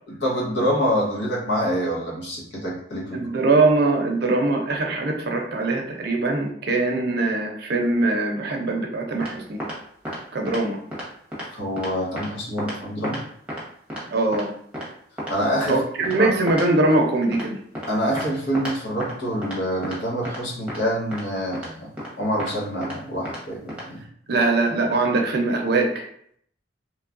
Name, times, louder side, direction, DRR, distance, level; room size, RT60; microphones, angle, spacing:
voice 1, 0.2-3.2 11.5-13.2 15.3-15.8 16.2-16.3 17.9-21.9 22.2-24.0, equal, 75° left, -3 dB, 0.9 m, -26 dB
voice 2, 3.1-9.6 10.3-10.8 14.1-14.5 15.7-17.6 24.3-26.0, right 2 dB, 60° right, 1 dB, 0.6 m, -22 dB
sound 1, 9.2-9.3 9.6-9.8 10.0-10.2 10.5-10.6 10.9-11.0 11.3-11.5 11.8-11.9 12.2-12.3 12.6-12.7 13.0-13.2 13.5-13.6 13.9-14.0 14.3-14.4 14.7-14.8 15.2-15.3 15.6-15.7 16.0-16.1 16.5-16.6 16.9-17.0 17.3-17.4 17.7-17.9 18.2-18.3 18.5-18.7 19.0-19.1 19.4-19.6 19.8-20.0 20.2-20.4 20.7-20.8 21.1-21.2 21.5-21.7 22.0-22.1 22.4-22.5 22.8-22.9 23.2-23.4 23.7-23.8, equal, 5° right, 0.8 m, -32 dB
3.1 x 2.2 x 2.4 m, 0.65 s
head